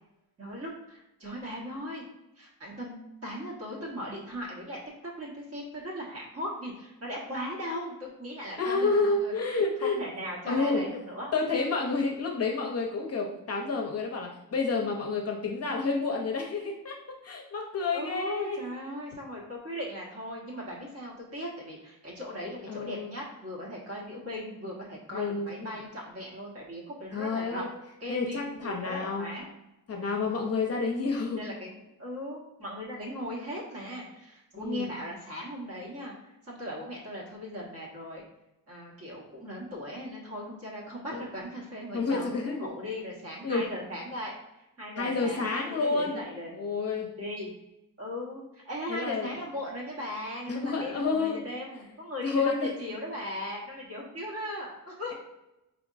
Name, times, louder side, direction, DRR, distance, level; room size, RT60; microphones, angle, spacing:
voice 1, 0.4-2.0 2.4-9.3 9.8-11.3 17.9-27.7 28.0-29.5 31.3-36.1 36.5-38.2 38.7-44.3 44.8-46.5 47.2-47.5 48.0-55.1, left 1 dB, 45° right, -3 dB, 1.2 m, -38 dB
voice 2, 8.6-10.0 10.5-10.8 11.3-17.0 17.2-18.6 22.7-23.2 25.1-25.8 27.1-27.7 28.1-29.3 29.9-31.4 34.5-34.9 41.1-41.2 41.9-42.7 43.4-43.7 45.0-46.2 46.5-47.1 48.9-49.3 50.5-51.4 52.2-52.7, left 4 dB, 45° left, 0 dB, 0.7 m, -29 dB
5.0 x 3.4 x 2.5 m, 0.93 s
wide cardioid pair, 170°, 35 cm